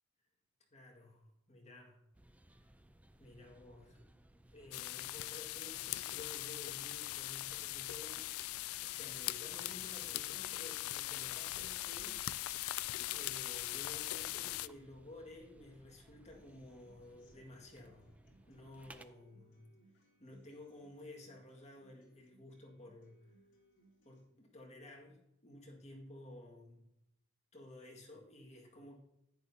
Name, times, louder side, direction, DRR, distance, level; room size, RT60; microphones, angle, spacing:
voice 1, 0.7-2.0 3.2-4.0 4.5-8.3 8.8-12.6 13.1-18.1 18.5-19.7 20.2-23.3 24.0-26.8 27.5-29.0, left 1 dB, 35° left, -1 dB, 1.9 m, -54 dB
sound 1, 2.1-19.1, right 1 dB, 5° right, 0.4 m, -63 dB
sound 2, 4.7-14.7, left 16 dB, 80° left, 0.3 m, -41 dB
Human voice / Acoustic guitar, 16.2-24.2, right 1 dB, 65° left, 3.0 m, -69 dB
10.5 x 10.0 x 2.8 m, 0.82 s
head